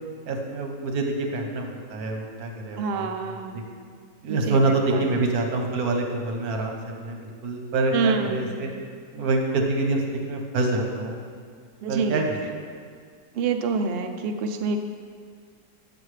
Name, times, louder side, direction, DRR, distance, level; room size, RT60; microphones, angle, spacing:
voice 1, 0.3-1.6 1.9-3.1 3.5-3.6 4.2-7.2 7.4-8.7 9.1-11.2 11.9-12.2, right 2 dB, 85° right, 2 dB, 1.4 m, -26 dB
voice 2, 2.8-3.7 4.3-5.1 7.9-8.5 11.8-12.3 13.3-14.8, right 4 dB, 65° right, 6 dB, 0.6 m, -27 dB
8.7 x 6.9 x 3.2 m, 2.1 s
omnidirectional pair, 1.5 m